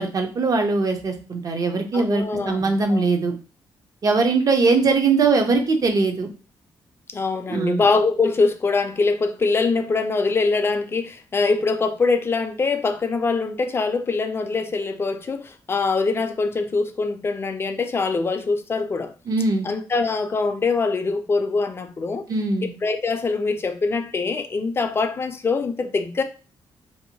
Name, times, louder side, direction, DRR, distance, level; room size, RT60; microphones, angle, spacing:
voice 1, 0.0-3.3 4.0-6.3 7.5-7.8 19.3-19.7 22.3-22.7, right 4 dB, 45° right, 0.5 m, -21 dB
voice 2, 1.9-3.1 7.1-19.1 19.6-22.2 22.8-26.2, left 4 dB, 25° left, 0.4 m, -23 dB
2.7 x 2.1 x 2.7 m
cardioid pair, 110°, 9 cm